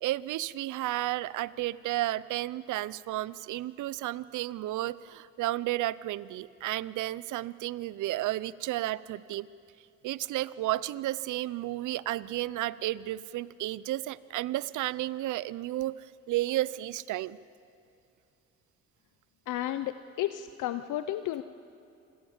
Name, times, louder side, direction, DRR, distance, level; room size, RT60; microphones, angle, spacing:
voice 1, 0.0-9.5 10.0-17.4, right 15 dB, 80° right, 19 dB, 0.6 m, -32 dB
voice 2, 19.5-21.4, left 13 dB, 85° left, 11 dB, 0.7 m, -32 dB
26.0 x 17.5 x 7.3 m, 2.6 s
cardioid pair, 90°, 30 cm